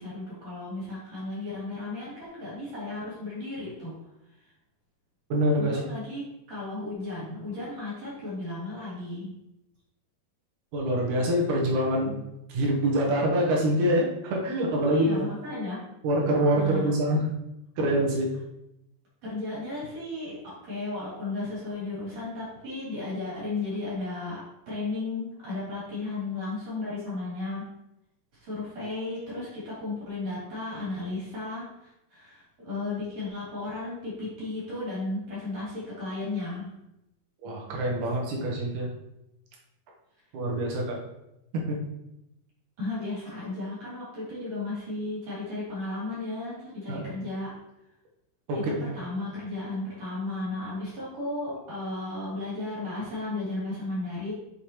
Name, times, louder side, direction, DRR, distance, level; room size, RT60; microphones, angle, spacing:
voice 1, 0.0-4.0 5.6-9.3 14.9-15.9 16.5-16.9 19.2-27.7 28.3-36.7 42.8-47.5 48.5-54.3, left 2 dB, 55° right, -8 dB, 4.3 m, -34 dB
voice 2, 5.3-5.8 10.7-12.2 12.5-15.2 16.0-17.3 17.8-18.3 37.4-38.9 40.3-41.0 41.5-41.8 46.9-47.0 48.5-48.7, right 1 dB, 75° right, -1 dB, 2.8 m, -25 dB
7.5 x 7.1 x 3.1 m, 0.87 s
omnidirectional pair, 3.6 m